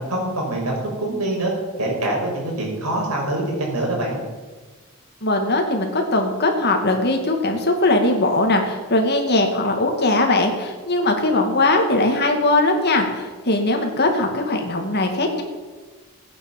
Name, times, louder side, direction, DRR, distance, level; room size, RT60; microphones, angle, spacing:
voice 1, 0.0-1.5 1.8-4.2, right 1 dB, 80° right, -1 dB, 5.8 m, -24 dB
voice 2, 5.2-15.4, left 2 dB, 45° left, 3 dB, 2.4 m, -20 dB
16.0 x 9.5 x 7.3 m, 1.4 s
head